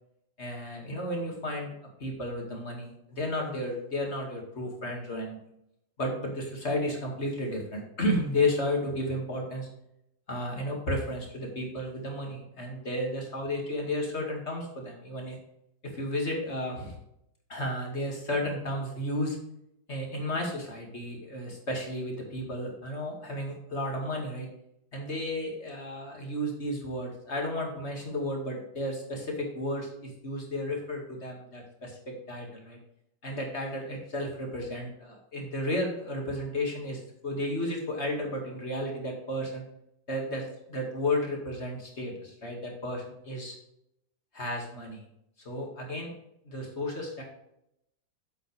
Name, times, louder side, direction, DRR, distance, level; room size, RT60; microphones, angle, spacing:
voice 1, 0.4-1.7 2.0-5.4 6.0-9.7 10.3-15.4 15.8-17.0 17.5-19.4 19.9-24.5 24.9-32.8 33.2-39.6 40.1-43.6 44.3-45.0 45.4-46.1 46.4-47.2, left 1 dB, 35° left, 0 dB, 2.4 m, -33 dB
8.4 x 7.8 x 3.4 m, 0.80 s
omnidirectional pair, 1.9 m